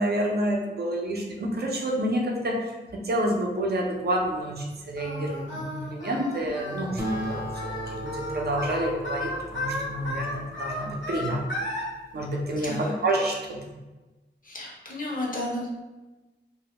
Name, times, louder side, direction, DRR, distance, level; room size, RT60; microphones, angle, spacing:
voice 1, 0.0-2.7 3.0-7.4 7.9-11.4 12.1-12.8 13.0-13.4, right 1 dB, 60° right, 0 dB, 0.5 m, -28 dB
Singing, 5.0-11.8, left 1 dB, 85° left, 0.8 m, -34 dB
Acoustic guitar, 7.0-11.8, equal, 15° right, 0.6 m, -37 dB
voice 2, 12.6-13.0 14.4-15.7, left 1 dB, 45° left, -3 dB, 0.6 m, -32 dB
2.1 x 2.1 x 2.9 m, 1.1 s
wide cardioid pair, 85°, 19 cm